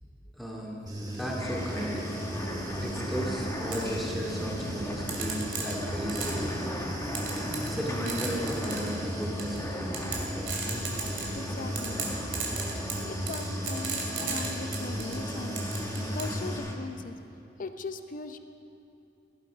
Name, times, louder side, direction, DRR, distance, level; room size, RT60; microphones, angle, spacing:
voice 1, 0.3-0.8 1.1-2.0 2.8-6.8 7.6-10.1 13.0-13.1, equal, ahead, -4 dB, 2.3 m, -35 dB
Human voice / Buzz, 0.9-16.6, equal, 20° right, 1.7 m, -37 dB
sound 1, 1.4-16.7, left 1 dB, 15° left, 1.3 m, -37 dB
sound 2, 3.7-3.8 5.1-6.5 7.2-7.8 8.1-8.9 9.4-9.6 9.9-11.4 11.8-15.2 15.6-16.4, right 6 dB, 85° right, 2.5 m, -35 dB
voice 2, 11.3-12.0 13.0-17.2 17.6-18.4, left 3 dB, 45° left, 8 dB, 0.7 m, -39 dB
17.5 x 11.5 x 5.1 m, 3.0 s
head